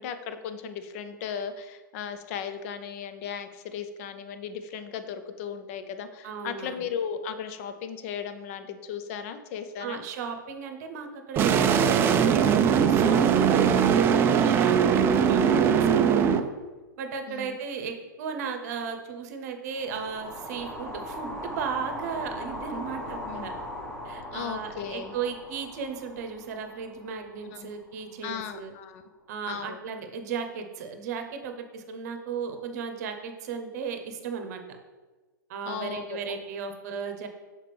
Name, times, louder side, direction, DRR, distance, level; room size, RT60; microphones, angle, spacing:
voice 1, 0.0-10.0 15.3-15.6 17.3-17.6 23.3-23.5 24.3-25.2 27.4-27.7 28.2-29.0 29.5-29.8 35.7-36.3, left 7 dB, 40° left, 9 dB, 0.5 m, -36 dB
voice 2, 6.2-6.8 9.8-16.5 17.0-23.5 24.0-28.7 29.3-34.6 35.5-37.3, right 6 dB, 50° right, 6 dB, 0.8 m, -35 dB
sound 1, 11.4-16.4, right 7 dB, 20° right, 0.3 m, -21 dB
sound 2, 19.7-28.0, left 1 dB, 5° left, 1.4 m, -39 dB
6.5 x 4.4 x 3.4 m, 1.3 s
figure-of-eight pair, 110°, 11 cm